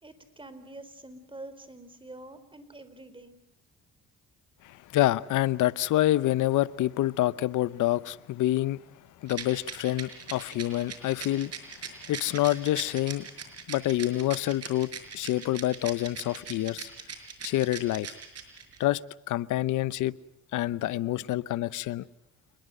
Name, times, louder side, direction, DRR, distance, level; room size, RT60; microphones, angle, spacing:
voice 1, 0.0-3.4, right 2 dB, 15° right, 4.1 m, -46 dB
voice 2, 4.6-8.8 9.2-11.5 12.1-13.3 13.7-16.9 17.4-18.1 18.8-19.0 19.3-20.1 20.5-22.0, left 15 dB, 85° left, 0.9 m, -27 dB
Rattle, 9.3-18.8, right 7 dB, 55° right, 5.5 m, -40 dB
28.0 x 21.5 x 7.9 m
cardioid pair, 90°, 30 cm